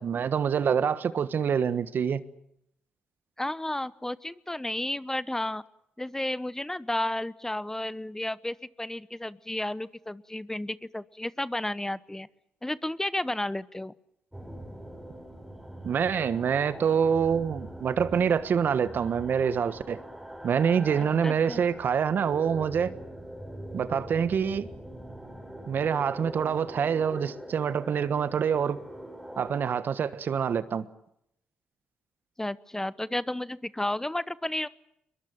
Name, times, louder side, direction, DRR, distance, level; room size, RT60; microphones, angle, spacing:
voice 1, 0.0-2.2 15.8-20.0 20.4-22.9 23.7-24.7 25.7-28.8 29.4-30.8, right 7 dB, 60° right, 1.3 m, -26 dB
voice 2, 3.4-5.6 6.0-12.3 12.6-13.9 21.0-21.6 32.4-34.7, left 1 dB, 10° left, 0.9 m, -32 dB
sound 1, 14.3-29.7, right 1 dB, 5° right, 5.8 m, -42 dB
22.5 x 22.0 x 9.2 m
supercardioid pair, 50°, 4 cm